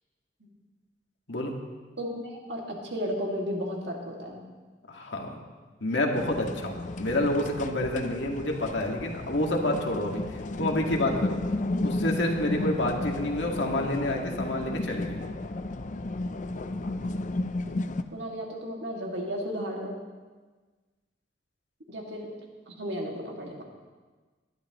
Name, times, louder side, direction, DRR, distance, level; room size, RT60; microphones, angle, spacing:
voice 1, 2.0-4.4 18.1-20.0 21.9-22.4 22.7-23.6, equal, 65° right, 0 dB, 2.2 m, -34 dB
voice 2, 4.9-5.4 5.8-11.4 11.8-15.2, left 1 dB, 80° left, 1 dB, 1.9 m, -28 dB
sound 1, 6.1-18.0, left 2 dB, 45° left, 0.5 m, -33 dB
19.0 x 12.0 x 3.0 m, 1.3 s
head